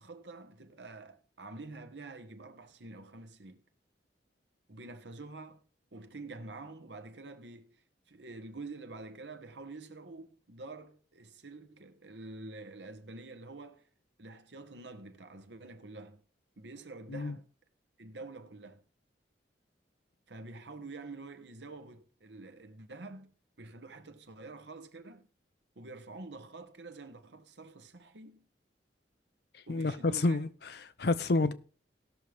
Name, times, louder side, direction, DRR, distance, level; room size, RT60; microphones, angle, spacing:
voice 1, 0.0-3.6 4.7-5.6 5.9-7.8 8.1-13.9 14.2-16.2 16.6-17.5 18.0-18.8 20.3-23.3 23.6-25.3 25.7-28.5 29.7-30.4, right 3 dB, 75° right, 1.3 m, -47 dB
voice 2, 29.7-31.5, left 2 dB, 65° left, 0.7 m, -29 dB
18.0 x 6.4 x 3.5 m
head